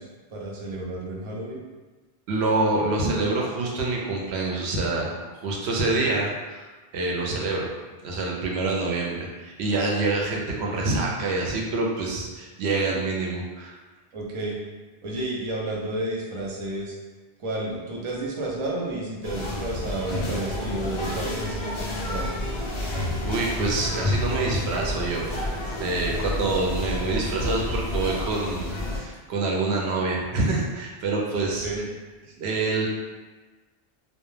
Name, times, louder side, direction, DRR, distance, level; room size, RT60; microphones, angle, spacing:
voice 1, 0.0-1.6 12.9-13.0 14.1-14.6 15.0-16.9 17.4-22.5 31.4-31.8, right 1 dB, 45° right, -3 dB, 0.4 m, -31 dB
voice 2, 2.3-6.7 6.9-7.7 8.0-13.7 23.2-31.7 32.4-32.9, right 3 dB, 85° right, -2 dB, 0.8 m, -26 dB
sound 1, 19.2-29.0, left 1 dB, 45° left, 0.4 m, -30 dB
2.2 x 2.2 x 3.1 m, 1.3 s
omnidirectional pair, 1.1 m